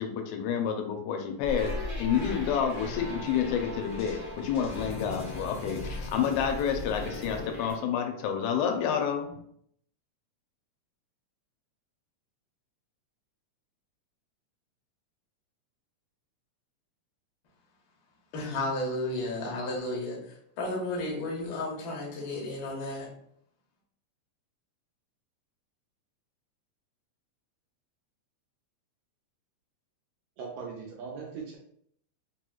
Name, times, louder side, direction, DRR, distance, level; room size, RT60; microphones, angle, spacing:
voice 1, 0.0-9.3, left 7 dB, 85° left, 4 dB, 2.0 m, -29 dB
sound 1, 1.4-7.8, left 2 dB, 25° left, 1.0 m, -37 dB
voice 2, 18.3-20.2 20.6-23.1, left 2 dB, 65° left, -2 dB, 1.3 m, -33 dB
voice 3, 30.4-31.6, right 5 dB, 80° right, -1 dB, 1.7 m, -39 dB
4.7 x 2.9 x 2.3 m, 0.69 s
omnidirectional pair, 3.4 m